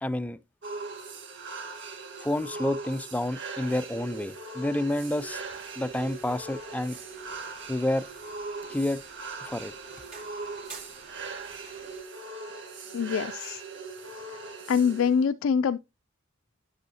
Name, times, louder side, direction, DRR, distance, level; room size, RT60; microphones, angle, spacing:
voice 1, 0.0-0.4 2.2-5.4 5.8-7.0 7.7-8.1 8.7-9.0 9.4-9.7, left 1 dB, 5° left, 0.4 m, -29 dB
sound 1, 0.6-15.3, right 3 dB, 60° right, 1.6 m, -40 dB
sound 2, 5.0-12.0, right 4 dB, 45° right, 2.7 m, -51 dB
voice 2, 12.9-13.6 14.7-15.8, left 6 dB, 70° left, 0.3 m, -24 dB
11.0 x 6.3 x 2.8 m
head